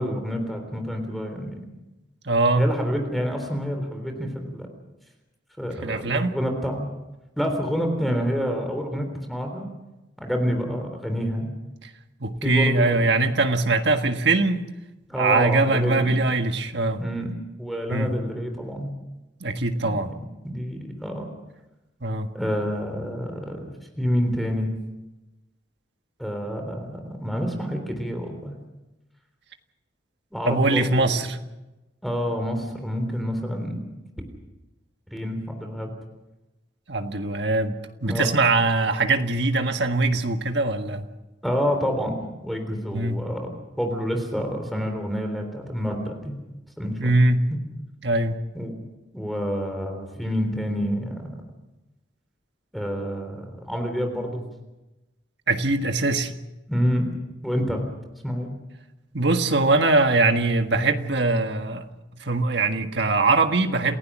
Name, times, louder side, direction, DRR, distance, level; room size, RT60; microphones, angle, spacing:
voice 1, 0.0-1.6 2.6-4.7 5.6-6.9 7.4-9.7 10.2-11.5 12.4-13.0 15.1-16.2 17.0-17.3 17.6-18.9 19.8-20.2 20.4-21.3 22.3-24.7 26.2-28.5 30.3-31.1 32.0-33.9 35.1-35.9 38.1-38.3 41.4-42.2 42.4-46.3 46.8-47.1 47.5-47.6 48.5-48.7 49.1-51.4 52.7-54.5 56.7-57.1 57.4-57.8 58.2-58.5, equal, ahead, 4 dB, 3.5 m, -28 dB
voice 2, 2.3-2.7 5.8-6.4 11.8-11.9 12.2-14.7 15.2-17.0 17.9-18.1 19.4-20.1 22.0-22.3 30.5-31.4 36.9-37.7 38.0-41.0 42.9-43.2 47.0-47.5 48.0-48.4 55.5-56.3 59.1-61.9 62.2-64.0, right 3 dB, 65° right, 6 dB, 1.7 m, -22 dB
29.0 x 16.0 x 6.2 m, 1.0 s
head